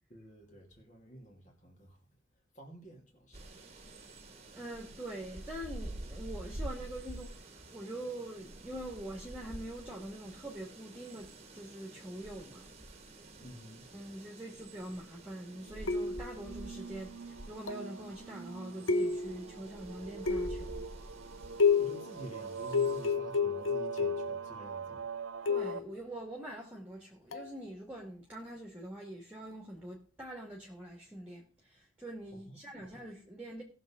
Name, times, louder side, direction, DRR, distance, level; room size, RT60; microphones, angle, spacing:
voice 1, 0.1-2.1 2.5-3.5 13.4-13.9 21.8-25.1 32.3-32.9, right 1 dB, 40° left, 2.8 m, -50 dB
sound 1, 3.3-23.1, right 1 dB, 30° right, 1.5 m, -48 dB
voice 2, 4.5-12.7 13.9-20.9 25.5-33.6, right 1 dB, 5° right, 2.0 m, -44 dB
sound 2, 15.5-25.8, right 6 dB, 85° right, 0.7 m, -44 dB
sound 3, 15.9-16.4 17.7-18.0 18.9-19.5 20.3-20.8 21.6-22.1 22.7-24.4 25.5-25.9 27.3-27.5, left 5 dB, 80° left, 1.0 m, -30 dB
18.5 x 6.7 x 3.8 m
head